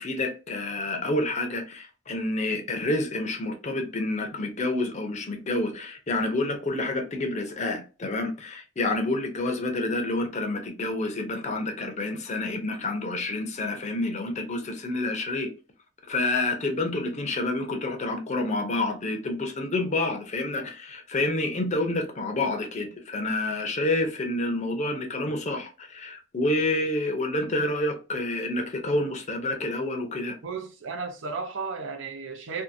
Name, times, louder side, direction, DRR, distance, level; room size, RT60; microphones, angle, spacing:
voice 1, 0.0-15.5 16.1-30.4, left 2 dB, 35° left, 0.6 m, -28 dB
voice 2, 30.4-32.6, right 4 dB, 75° right, 0.6 m, -34 dB
2.7 x 2.5 x 2.5 m
head